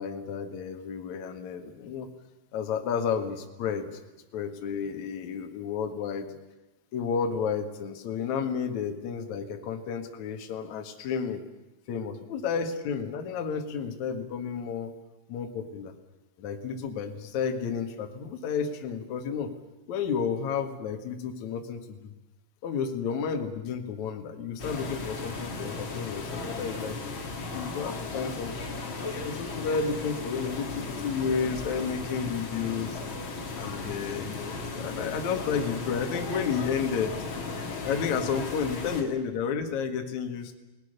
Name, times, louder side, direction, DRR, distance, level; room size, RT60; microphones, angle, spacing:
voice 1, 0.0-2.1 2.5-3.9 4.3-6.3 6.9-11.4 11.9-14.9 15.3-15.9 16.4-19.5 19.9-22.1 22.6-28.6 29.2-33.0 33.6-37.2 37.8-40.6, left 6 dB, 50° left, 5 dB, 2.6 m, -31 dB
sound 1, 24.6-39.0, left 3 dB, 35° left, 2.7 m, -36 dB
29.5 x 19.5 x 6.8 m, 1.0 s
omnidirectional pair, 5.3 m